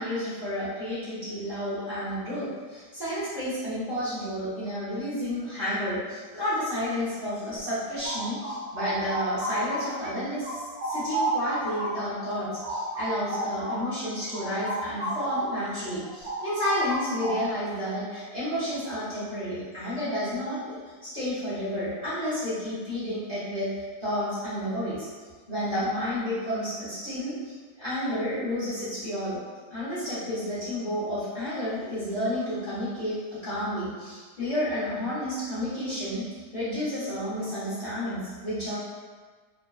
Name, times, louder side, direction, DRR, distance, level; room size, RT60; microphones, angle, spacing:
voice 1, 0.0-23.7 24.0-25.1 25.5-29.4 29.7-33.2 33.4-36.2 36.5-38.8, left 1 dB, 35° left, -13 dB, 0.7 m, -31 dB
sound 1, 7.6-10.1 10.4-15.6 15.9-17.7, right 2 dB, 75° right, 1.1 m, -32 dB
2.7 x 2.2 x 2.3 m, 1.5 s
omnidirectional pair, 1.8 m